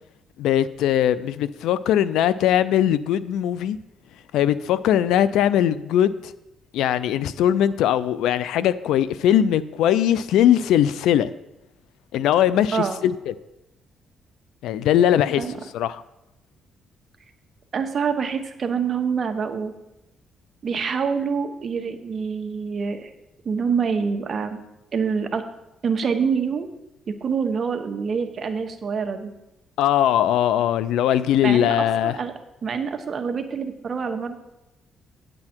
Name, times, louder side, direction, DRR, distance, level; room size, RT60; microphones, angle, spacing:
voice 1, 0.4-3.8 4.3-6.3 6.7-11.3 12.1-13.3 14.6-15.4 15.7-16.0 29.8-32.2, left 10 dB, 85° left, 17 dB, 0.4 m, -20 dB
voice 2, 17.7-19.7 20.6-23.1 23.4-24.6 24.9-25.4 25.8-26.7 27.2-29.3 31.4-31.8 32.0-32.3 32.6-34.3, right 6 dB, 45° right, 6 dB, 1.1 m, -26 dB
9.5 x 7.7 x 4.5 m, 0.91 s
cardioid pair, 90°, 0 cm